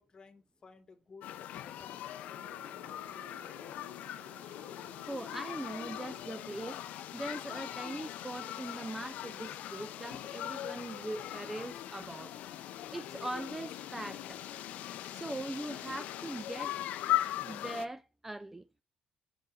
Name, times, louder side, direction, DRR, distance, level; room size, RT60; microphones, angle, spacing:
voice 1, 0.0-4.1, left 4 dB, 35° left, 1.3 m, -58 dB
sound 1, 1.2-17.8, left 13 dB, 80° left, 0.5 m, -40 dB
Wind instrument woodwind instrument, 2.3-6.6, right 11 dB, 55° right, 0.8 m, -60 dB
voice 2, 4.7-6.8 7.1-12.4 12.9-14.4 15.0-16.7 17.4-18.7, right 2 dB, 10° right, 0.3 m, -41 dB
5.2 x 4.5 x 6.2 m
cardioid pair, 110°, 3 cm